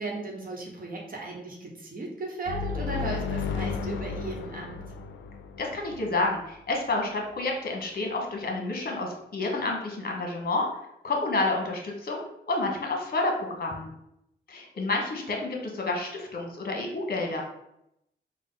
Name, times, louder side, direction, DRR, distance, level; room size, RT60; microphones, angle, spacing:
voice 1, 0.0-4.8, right 3 dB, 45° right, -1 dB, 1.2 m, -36 dB
sound 1, 2.5-6.2, left 6 dB, 75° left, 0.4 m, -33 dB
voice 2, 5.6-10.7 11.0-13.9 14.5-17.4, left 2 dB, 50° left, 1 dB, 1.1 m, -29 dB
4.0 x 2.3 x 3.8 m, 0.80 s
cardioid pair, 70°, 20 cm